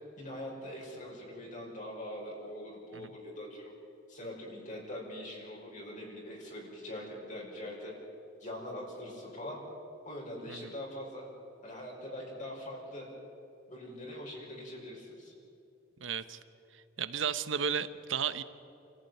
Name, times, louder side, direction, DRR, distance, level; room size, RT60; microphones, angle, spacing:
voice 1, 0.2-3.7 4.1-7.9 8.4-9.6 10.0-11.3 11.6-13.1 13.7-15.3, left 1 dB, 40° left, -2 dB, 5.5 m, -43 dB
voice 2, 16.0-16.4 17.0-18.4, right 7 dB, 85° right, 13 dB, 1.0 m, -33 dB
28.5 x 14.5 x 9.3 m, 2.7 s
head